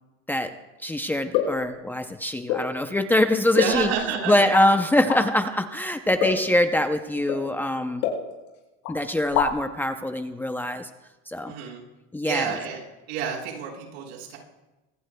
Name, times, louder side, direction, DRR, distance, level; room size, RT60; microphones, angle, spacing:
voice 1, 0.8-3.9 4.3-8.0 8.9-10.9 11.3-11.5 12.1-12.5, left 1 dB, 5° left, 7 dB, 0.6 m, -23 dB
sound 1, 1.3-1.6 2.5-2.7 3.5-4.1 4.5-4.6 5.1-5.2 6.2-6.5 7.3-7.4 8.0-8.6 8.8-8.9 9.2-9.7, left 8 dB, 85° left, 6.4 m, -26 dB
voice 2, 3.6-4.5 6.2-6.4 11.5-11.8 12.2-14.4, right 7 dB, 85° right, -1 dB, 5.9 m, -30 dB
25.0 x 19.5 x 2.2 m, 1.1 s
cardioid pair, 150°, 31 cm